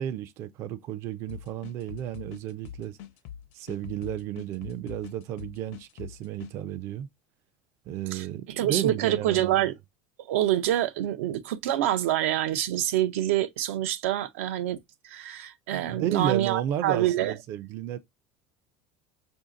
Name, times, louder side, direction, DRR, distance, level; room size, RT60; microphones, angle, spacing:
voice 1, 0.0-3.0 3.5-7.1 7.9-9.7 15.7-18.0, right 11 dB, 40° right, 0.4 m, -33 dB
sound 1, 1.3-6.5, left 10 dB, 60° left, 0.7 m, -43 dB
voice 2, 8.1-9.7 10.3-14.8 15.0-17.3, right 12 dB, 90° right, 0.6 m, -26 dB
5.0 x 2.7 x 3.7 m
supercardioid pair, 155°, 7 cm